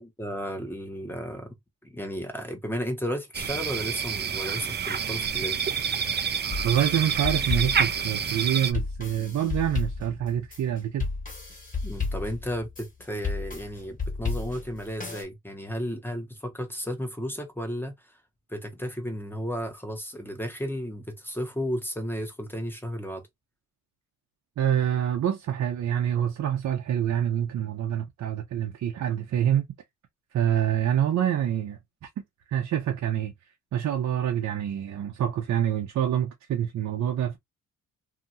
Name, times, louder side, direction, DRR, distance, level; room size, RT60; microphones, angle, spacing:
voice 1, 0.0-1.5 1.8-5.6 11.8-18.0 18.5-23.2, equal, 5° left, 1.2 m, -33 dB
sound 1, 3.3-8.7, right 7 dB, 35° right, 0.6 m, -28 dB
sound 2, 6.5-15.2, left 4 dB, 25° left, 1.7 m, -33 dB
voice 2, 6.6-11.1 24.6-29.7 30.3-31.8 32.5-33.3 33.7-37.4, right 10 dB, 65° right, 0.8 m, -26 dB
2.9 x 2.6 x 2.6 m
cardioid pair, 90°, 30 cm